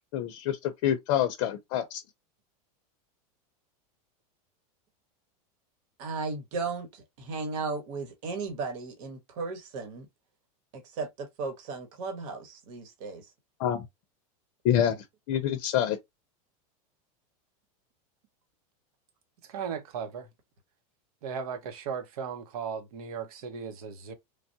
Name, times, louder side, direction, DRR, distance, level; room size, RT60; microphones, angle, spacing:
voice 1, 0.1-2.0 13.6-13.9 14.6-16.0, left 10 dB, 50° left, 0.6 m, -27 dB
voice 2, 6.0-10.1 10.7-13.3, right 4 dB, 60° right, 1.1 m, -35 dB
voice 3, 19.5-20.3 21.2-24.1, right 6 dB, 75° right, 0.9 m, -36 dB
3.3 x 2.2 x 2.7 m
supercardioid pair, 145°, 19 cm